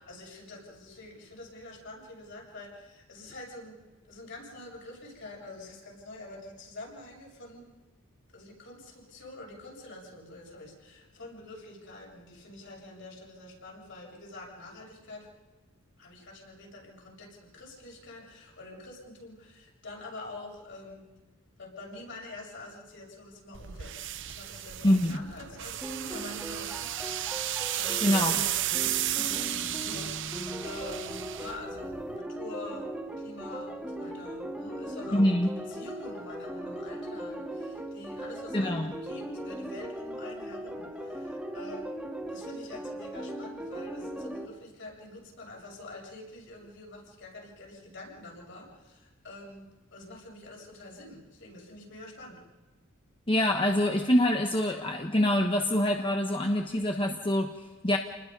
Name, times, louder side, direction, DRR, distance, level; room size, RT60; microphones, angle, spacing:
voice 1, 0.0-3.8 4.0-7.7 8.3-15.3 16.0-21.0 21.6-23.9 24.2-41.9 42.3-52.4, left 2 dB, 60° left, -2 dB, 7.0 m, -46 dB
Dry Erase Slow, 23.5-32.2, right 13 dB, 60° right, 0.7 m, -33 dB
voice 2, 24.8-25.2 28.0-28.3 35.1-35.5 38.5-38.9 53.3-58.0, left 1 dB, 25° left, 2 dB, 1.2 m, -25 dB
sound 1, 25.8-44.5, right 1 dB, 5° right, 2.1 m, -39 dB
29.0 x 20.5 x 5.4 m, 1.2 s
head